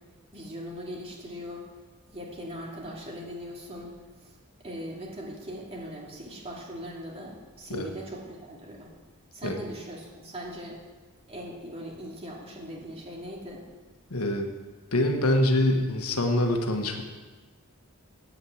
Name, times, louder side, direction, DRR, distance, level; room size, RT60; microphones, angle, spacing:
voice 1, 0.3-1.7 2.1-4.4 4.6-8.9 9.3-10.8 11.3-13.7, equal, 25° right, -2 dB, 2.5 m, -40 dB
voice 2, 14.1-14.5 14.9-17.0, left 1 dB, 85° left, 4 dB, 1.4 m, -25 dB
8.8 x 8.3 x 8.0 m, 1.3 s
head